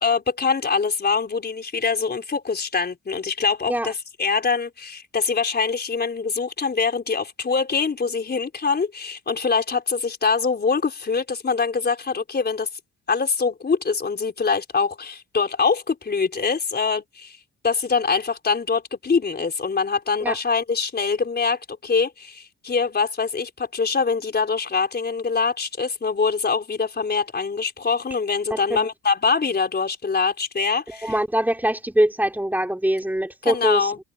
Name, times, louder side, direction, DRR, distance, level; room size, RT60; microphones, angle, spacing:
voice 1, 0.0-12.7 13.1-17.4 17.6-31.2 33.4-34.0, left 5 dB, 35° left, 4.3 m, -24 dB
voice 2, 28.5-28.9 30.9-33.9, right 1 dB, 5° right, 3.6 m, -23 dB
cardioid pair, 90°, 30 cm